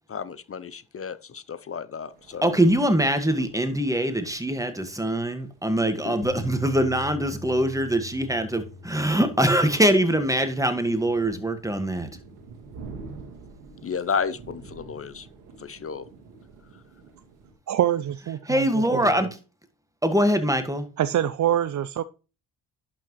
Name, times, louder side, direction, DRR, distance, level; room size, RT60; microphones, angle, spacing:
voice 1, 0.1-2.6 5.9-6.1 13.8-15.3 15.6-16.0 16.7-16.8, left 6 dB, 35° left, 0.7 m, -32 dB
sound 1, 2.0-17.5, right 4 dB, 85° right, 1.8 m, -48 dB
voice 2, 2.4-12.1 18.5-19.3 20.0-20.9, right 1 dB, 10° right, 1.6 m, -23 dB
Bass guitar, 6.2-12.5, left 5 dB, 70° left, 1.2 m, -44 dB
voice 3, 17.7-19.3 21.0-22.0, right 11 dB, 45° right, 0.6 m, -25 dB
11.0 x 6.1 x 3.1 m
hypercardioid pair, 50°, 41 cm